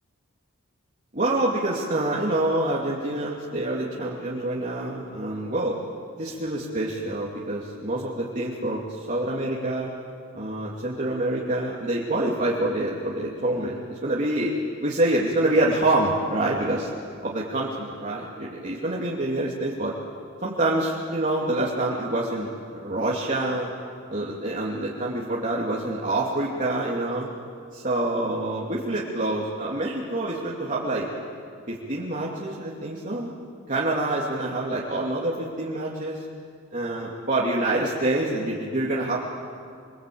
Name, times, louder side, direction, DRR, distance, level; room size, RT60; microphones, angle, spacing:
voice 1, 1.1-5.8 6.2-9.9 10.3-14.5 14.8-16.9 17.2-19.9 20.4-23.7 24.1-27.3 27.7-31.1 31.7-33.3 33.7-36.2 36.7-39.2, right 2 dB, 35° right, -5 dB, 2.6 m, -26 dB
29.0 x 23.0 x 8.6 m, 2.3 s
head